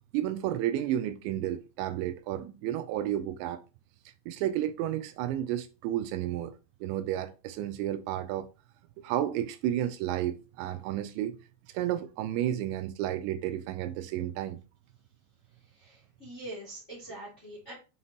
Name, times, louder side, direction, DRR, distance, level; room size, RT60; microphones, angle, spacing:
voice 1, 0.1-3.6 4.3-6.5 6.8-8.5 9.0-11.4 11.7-14.6, right 12 dB, 85° right, 2.8 m, -32 dB
voice 2, 15.5-17.7, right 1 dB, 25° left, 1.5 m, -44 dB
7.9 x 5.7 x 2.8 m
omnidirectional pair, 5.4 m